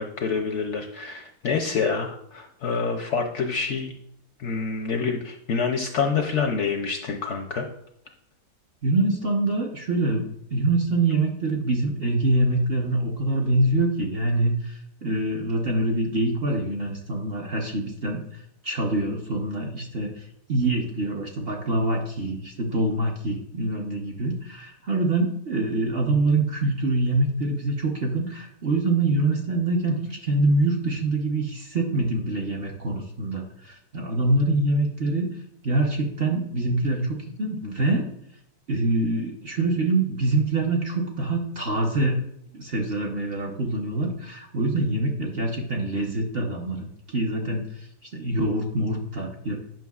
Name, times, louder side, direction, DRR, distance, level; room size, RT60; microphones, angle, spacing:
voice 1, 0.0-3.9 4.4-7.6, left 5 dB, 65° left, 3 dB, 0.7 m, -27 dB
voice 2, 8.8-14.7 15.0-35.3 35.6-38.1 38.7-42.3 42.5-47.9 48.1-49.6, right 2 dB, 50° right, 0 dB, 0.8 m, -25 dB
9.0 x 5.6 x 2.3 m, 0.73 s
omnidirectional pair, 1.7 m